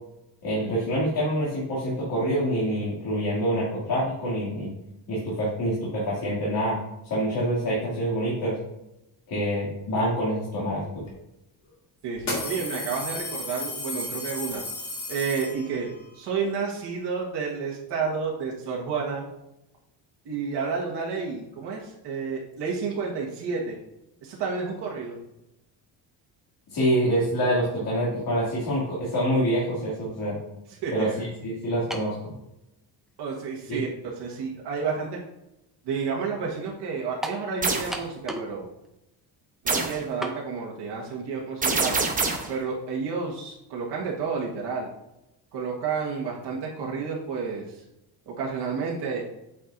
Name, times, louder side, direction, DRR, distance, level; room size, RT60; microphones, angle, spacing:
voice 1, 0.4-4.7 5.1-6.8 7.0-8.6 9.3-11.0 26.7-30.3 30.9-32.3 33.7-33.8, equal, 55° left, -7 dB, 2.6 m, -26 dB
sound 1, 11.1-11.2 12.2-16.0, left 2 dB, 40° left, 2.1 m, -34 dB
voice 2, 12.0-14.6 15.1-19.3 20.2-23.8 24.2-25.2 30.7-31.2 33.2-35.2 35.8-38.7 39.6-42.1 42.5-44.9 45.5-47.8 48.3-49.2, right 5 dB, 65° right, -3 dB, 1.6 m, -30 dB
sound 2, 31.9-32.2 33.1-33.2 37.2-37.5 37.9-38.6 38.8-38.9 40.2-40.4, right 1 dB, ahead, 0.4 m, -33 dB
sound 3, 37.6-37.9 39.7-40.0 41.6-42.5, right 4 dB, 20° right, 0.8 m, -25 dB
8.7 x 6.1 x 2.6 m, 0.89 s
cardioid pair, 165°, 44 cm